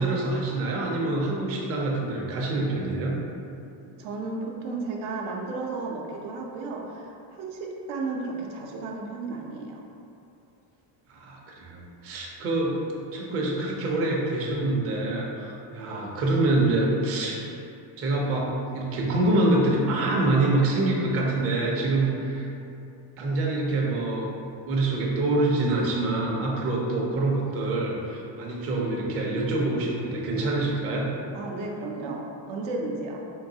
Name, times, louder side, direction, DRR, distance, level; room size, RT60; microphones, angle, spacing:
voice 1, 0.0-3.1 11.1-12.8 13.1-17.4 18.0-22.5 23.2-31.1, right 2 dB, 30° right, -2 dB, 0.5 m, -26 dB
voice 2, 4.0-9.8 31.3-33.2, right 3 dB, 75° right, 0 dB, 0.6 m, -33 dB
3.8 x 2.3 x 2.7 m, 2.6 s
cardioid pair, 110°, 50 cm